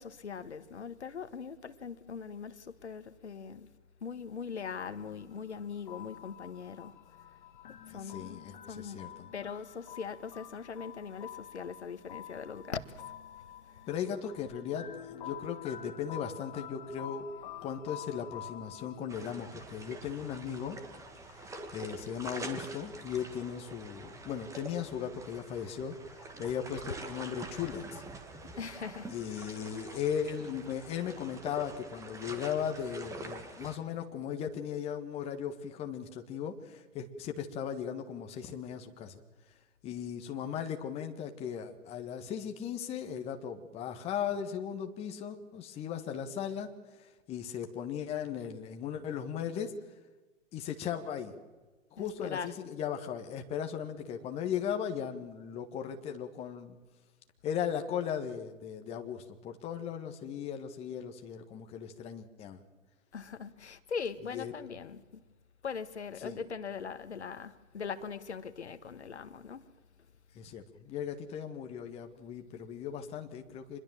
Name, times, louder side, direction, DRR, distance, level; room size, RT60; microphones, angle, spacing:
voice 1, 0.0-3.7 4.0-7.0 7.9-8.4 8.7-9.0 9.3-13.0 13.7-13.8 17.6-17.7 27.0-27.1 27.6-27.7 28.6-29.1 52.0-52.6 63.1-65.0 65.6-69.7, left 6 dB, 60° left, 1.6 m, -41 dB
sound 1, 4.8-19.6, left 10 dB, 40° left, 1.3 m, -48 dB
voice 2, 7.9-9.3 13.9-17.2 17.6-20.8 21.4-28.0 29.1-39.2 39.8-46.7 47.3-49.7 50.5-51.3 51.9-56.8 57.4-62.6 64.3-64.5 66.2-66.4 70.3-73.8, left 8 dB, 15° left, 1.5 m, -37 dB
sound 2, 19.1-33.8, right 2 dB, 10° right, 1.8 m, -46 dB
26.0 x 21.5 x 7.5 m
figure-of-eight pair, 120°, 39 cm